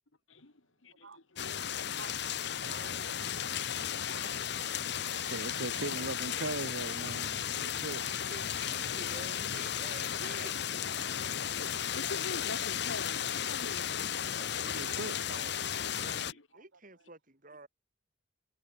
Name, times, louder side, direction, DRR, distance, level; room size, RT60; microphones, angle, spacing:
voice 1, 0.3-1.8 2.9-4.4 6.3-6.5 6.9-7.0 8.2-8.6 9.4-9.5 10.4-10.6 11.2-14.5 15.8-15.9 16.3-16.5, left 3 dB, 90° left, 1.8 m, -47 dB
sound 1, 1.4-16.3, left 9 dB, 60° left, 1.1 m, -35 dB
voice 2, 2.0-2.4 2.7-3.1 3.7-4.2 5.1-8.0 11.7-11.8 14.6-15.2, right 3 dB, 80° right, 1.5 m, -41 dB
voice 3, 2.6-3.1 3.7-4.9 8.1-10.8 14.3-17.7, right 2 dB, 45° right, 5.8 m, -51 dB
head